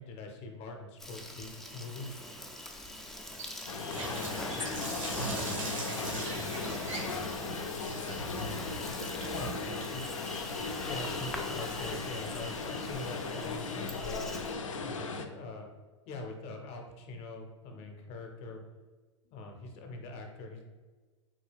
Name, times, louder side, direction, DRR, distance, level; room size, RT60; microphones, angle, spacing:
voice 1, 0.0-2.2 9.3-9.5 9.9-10.0 10.8-14.2 14.8-15.7 16.1-18.6 19.2-20.6, left 3 dB, 40° left, 3 dB, 0.7 m, -43 dB
Insect, 1.0-14.6, left 1 dB, ahead, 0.4 m, -43 dB
Water tap faucet, 3.4-12.3, right 2 dB, 90° right, 0.9 m, -43 dB
sound 1, 3.7-15.2, left 4 dB, 85° left, 0.4 m, -37 dB
voice 2, 4.8-9.8, right 4 dB, 55° right, 5 dB, 0.5 m, -44 dB
3.7 x 2.3 x 3.3 m, 1.3 s
hypercardioid pair, 105°, 16 cm